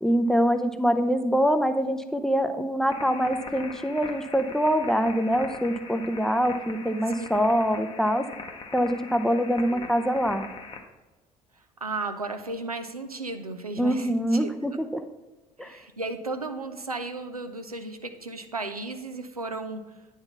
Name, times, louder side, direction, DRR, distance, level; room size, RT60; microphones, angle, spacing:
voice 1, 0.0-8.3 8.7-10.4 13.8-15.0 15.6-15.8, equal, 5° left, 8 dB, 0.6 m, -24 dB
sound 1, 2.9-10.8, left 4 dB, 30° left, 1.0 m, -41 dB
voice 2, 11.8-14.5 15.6-19.8, right 3 dB, 90° right, 7 dB, 0.4 m, -34 dB
9.6 x 4.0 x 5.7 m, 1.1 s
figure-of-eight pair, 55°, 18 cm